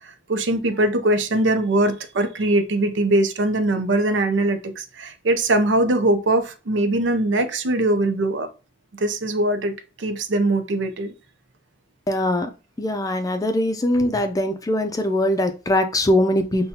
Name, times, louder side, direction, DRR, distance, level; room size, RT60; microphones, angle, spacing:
voice 1, 0.0-8.5 8.9-11.1, right 1 dB, 80° right, 0.6 m, -21 dB
voice 2, 12.1-12.5 12.8-16.7, left 1 dB, 20° left, 0.4 m, -21 dB
5.6 x 2.2 x 2.7 m
head